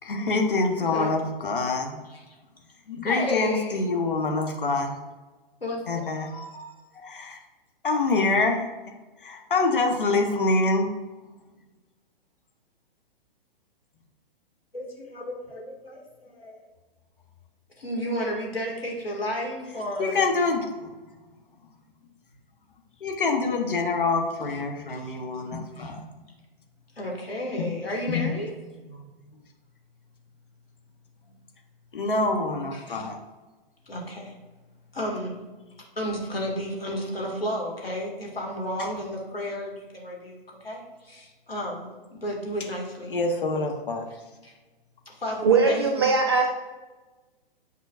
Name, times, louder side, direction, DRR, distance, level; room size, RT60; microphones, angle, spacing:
voice 1, 0.0-2.0 2.9-5.0 5.9-7.4 7.8-8.7 9.2-10.9 20.0-20.9 23.0-26.1 27.6-27.7 28.1-28.4 28.9-29.1 31.9-33.2 38.8-38.9 43.1-44.1, left 3 dB, 60° left, 3 dB, 1.1 m, -26 dB
voice 2, 3.0-3.8 5.6-6.0 14.7-16.6 17.8-20.2 24.9-25.1 25.8-25.9 27.0-28.5 32.7-33.0 33.9-34.3 34.9-35.4 36.0-40.4 40.6-43.2 44.4-44.5 45.1-46.1, equal, 80° left, -1 dB, 2.0 m, -32 dB
voice 3, 45.4-46.5, right 4 dB, 30° right, 3 dB, 0.4 m, -20 dB
8.4 x 5.6 x 2.5 m, 1.2 s
figure-of-eight pair, 120°, 29 cm